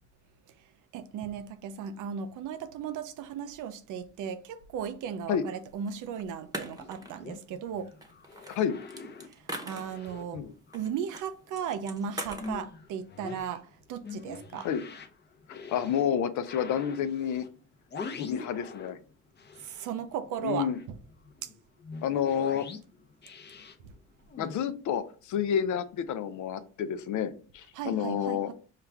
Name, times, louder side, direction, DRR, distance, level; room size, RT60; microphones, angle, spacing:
voice 1, 0.9-7.9 9.2-10.4 10.7-14.7 19.6-21.0 21.4-21.5 23.8-23.9 27.7-28.5, right 8 dB, 85° right, 0.6 m, -36 dB
sound 1, 5.9-6.0 6.5-7.3 8.0-10.2 10.7-11.3 11.6-12.5, right 1 dB, 10° right, 0.9 m, -40 dB
sound 2, 6.5-11.2 11.5-19.0 19.3-24.5, left 4 dB, 35° left, 0.7 m, -45 dB
voice 2, 15.5-17.5 18.2-19.0 20.4-20.8 22.0-22.7 24.4-28.5, left 8 dB, 75° left, 0.5 m, -29 dB
5.6 x 2.4 x 3.4 m
cardioid pair, 90°, 30 cm